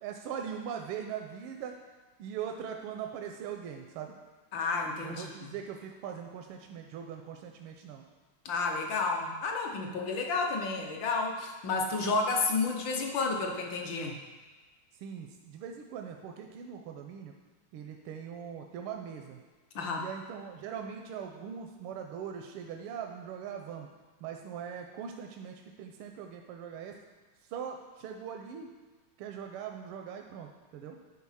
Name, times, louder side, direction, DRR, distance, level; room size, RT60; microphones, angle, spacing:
voice 1, 0.0-1.7 2.2-4.1 5.0-8.0 15.0-17.3 17.7-19.4 20.0-23.9 24.2-26.9 27.5-28.7 29.2-31.0, right 8 dB, 85° right, 3 dB, 1.5 m, -41 dB
voice 2, 4.5-5.5 8.4-14.1 19.7-20.0, left 3 dB, 65° left, 1 dB, 1.5 m, -31 dB
9.6 x 4.1 x 5.6 m, 1.3 s
omnidirectional pair, 2.4 m